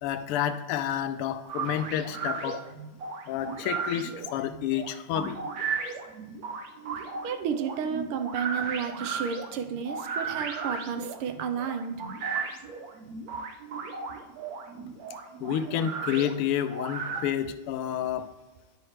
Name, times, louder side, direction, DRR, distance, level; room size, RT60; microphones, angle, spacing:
voice 1, 0.0-2.6 3.3-5.4 12.3-12.4 15.4-18.3, left 10 dB, 90° left, 11 dB, 1.5 m, -29 dB
sound 1, 1.4-17.2, right 5 dB, 65° right, 0.9 m, -35 dB
voice 2, 7.2-11.9, right 7 dB, 85° right, 7 dB, 1.6 m, -32 dB
9.7 x 5.7 x 3.1 m, 1.1 s
omnidirectional pair, 2.4 m